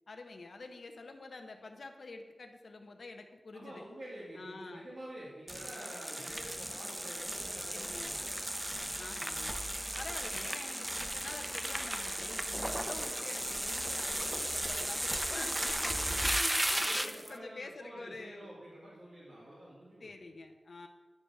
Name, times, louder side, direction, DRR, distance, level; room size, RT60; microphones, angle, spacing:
voice 1, 0.1-3.8 4.3-4.9 7.7-8.2 9.0-9.5 10.0-18.5 20.0-20.9, left 3 dB, 65° left, 4 dB, 0.6 m, -47 dB
voice 2, 3.5-8.4 16.7-20.3, right 1 dB, 80° right, -9 dB, 2.0 m, -48 dB
sound 1, 5.5-17.3, right 1 dB, 15° right, 0.5 m, -35 dB
9.2 x 3.3 x 6.4 m, 1.3 s
wide cardioid pair, 80°, 0 cm